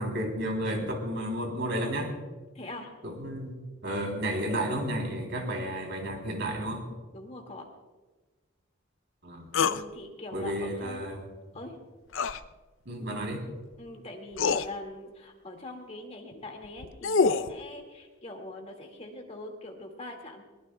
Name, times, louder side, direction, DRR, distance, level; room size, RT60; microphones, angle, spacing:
voice 1, 0.0-2.1 3.0-3.5 3.8-6.9 9.2-9.5 10.3-11.2 12.8-13.4, right 1 dB, 60° right, 2 dB, 3.3 m, -32 dB
voice 2, 2.5-2.9 7.1-7.7 9.6-11.1 11.5-11.8 13.8-20.4, left 2 dB, 30° left, 2 dB, 2.1 m, -42 dB
sound 1, 9.5-9.8 12.1-12.4 13.7-13.8 14.4-14.7 16.6-17.5, left 5 dB, 70° left, 0.5 m, -25 dB
22.0 x 19.0 x 2.3 m, 1.3 s
head